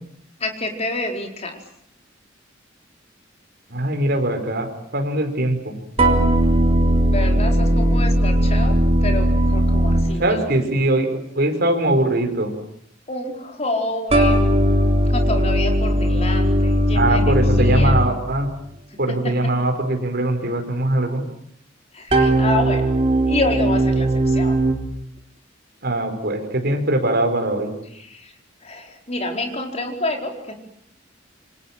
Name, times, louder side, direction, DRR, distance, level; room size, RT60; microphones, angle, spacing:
voice 1, 0.4-1.6 7.1-10.6 13.1-14.6 15.1-18.0 18.9-19.0 19.2-19.4 21.9-22.9 23.3-24.6 27.9-28.3 28.6-30.6, left 2 dB, 35° left, 3 dB, 4.6 m, -28 dB
voice 2, 3.7-5.7 10.2-12.5 16.9-18.5 19.0-21.2 25.8-27.7, right 1 dB, 55° right, 4 dB, 5.3 m, -21 dB
sound 1, 6.0-10.6 14.1-18.4 22.1-24.7, right 1 dB, 35° right, 3.6 m, -18 dB
27.5 x 25.5 x 7.6 m, 0.71 s
head